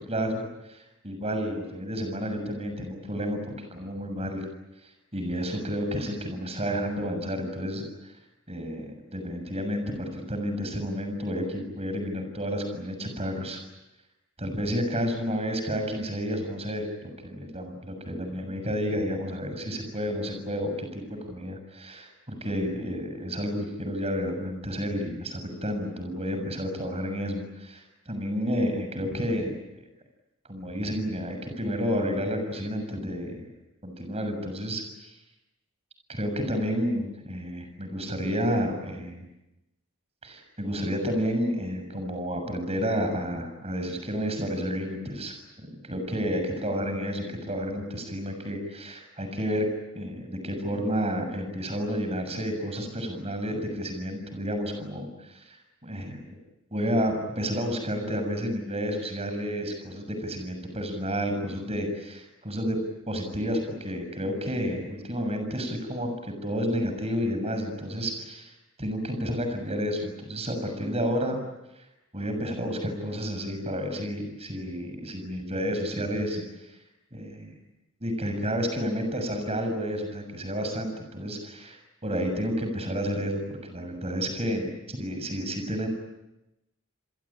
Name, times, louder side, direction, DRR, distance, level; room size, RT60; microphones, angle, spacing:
voice 1, 0.0-4.5 5.1-8.1 8.5-13.6 14.4-29.5 30.5-33.5 33.8-35.1 36.1-39.3 40.2-49.7 50.0-55.6 55.8-56.2 56.7-62.8 63.1-71.4 71.8-71.9 72.1-76.4 76.7-76.8 77.1-77.5 78.0-85.9, equal, 30° right, 6 dB, 6.8 m, -31 dB
29.0 x 22.5 x 8.8 m, 0.97 s
head